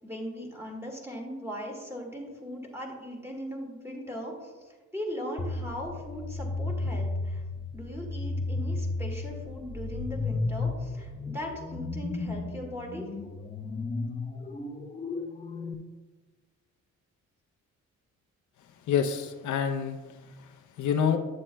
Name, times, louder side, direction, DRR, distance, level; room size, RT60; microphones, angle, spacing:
voice 1, 0.0-7.4 7.7-13.1, equal, 10° right, -1 dB, 1.9 m, -39 dB
sound 1, 5.4-15.7, left 3 dB, 20° left, 0.6 m, -34 dB
voice 2, 18.9-20.0 20.4-21.2, left 7 dB, 70° left, 5 dB, 0.7 m, -27 dB
9.5 x 7.3 x 2.2 m, 1.3 s
cardioid pair, 90°, 30 cm